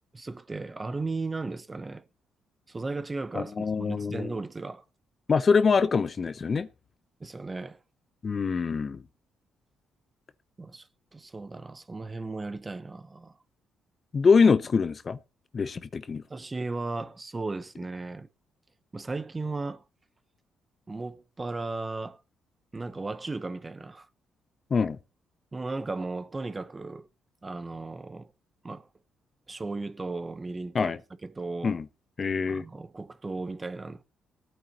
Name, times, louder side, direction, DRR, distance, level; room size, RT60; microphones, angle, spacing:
voice 1, 0.1-2.0 2.7-4.8 7.2-7.8 10.6-13.3 16.3-18.3 18.9-19.8 20.9-22.2 22.7-24.1 25.5-27.1 27.4-28.3 28.6-28.9 29.5-30.9 31.2-31.8 32.5-34.0, right 3 dB, 25° right, 0.9 m, -36 dB
voice 2, 3.3-4.3 5.3-6.7 8.2-9.0 14.1-15.2 15.5-16.2 24.7-25.0 30.7-31.0 31.6-31.8 32.2-32.6, left 5 dB, 40° left, 0.7 m, -24 dB
18.5 x 9.1 x 2.9 m
cardioid pair, 90°, 0 cm